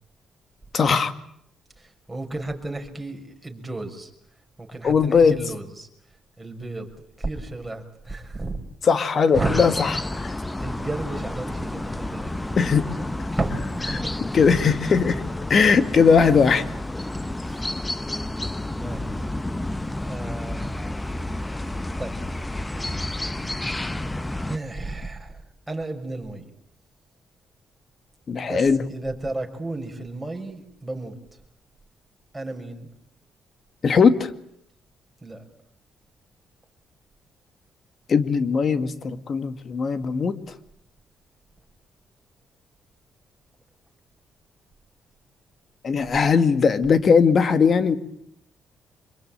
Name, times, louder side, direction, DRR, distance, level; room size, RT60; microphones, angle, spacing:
voice 1, 0.7-1.1 4.8-5.4 8.8-10.4 12.6-12.9 13.9-14.0 14.3-15.2 15.5-16.6 28.3-28.9 33.8-34.3 38.1-40.5 45.8-48.0, left 5 dB, 50° left, 11 dB, 2.1 m, -19 dB
voice 2, 1.8-4.1 4.6-5.9 6.4-6.9 7.2-8.6 9.3-9.6 10.6-12.5 12.8-14.2 17.5-17.7 18.8-19.2 20.1-20.7 22.0-22.2 24.5-25.4 25.7-26.5 28.4-31.2 32.3-32.9 35.2-35.5, right 2 dB, 10° right, 2 dB, 6.3 m, -33 dB
sound 1, 9.3-24.6, left 1 dB, 15° left, 1.1 m, -30 dB
26.0 x 22.5 x 9.0 m, 0.72 s
cardioid pair, 85°, 0 cm